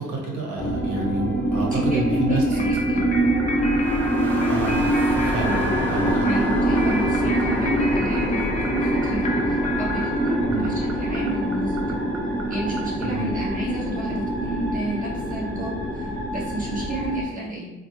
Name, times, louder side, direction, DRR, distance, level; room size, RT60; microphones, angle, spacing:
voice 1, 0.0-2.4 4.4-6.2 10.5-10.6 13.0-13.2, right 1 dB, 75° right, -1 dB, 1.1 m, -28 dB
sound 1, 0.6-17.2, right 1 dB, 5° left, 0.9 m, -24 dB
voice 2, 1.7-3.1 6.2-11.9 12.5-17.7, right 1 dB, 25° right, -6 dB, 1.5 m, -31 dB
sound 2, 2.5-13.1, right 7 dB, 55° right, 0.5 m, -38 dB
sound 3, 2.6-10.9, left 3 dB, 25° left, 0.5 m, -34 dB
3.8 x 2.3 x 3.0 m, 0.97 s
cardioid pair, 90°, 30 cm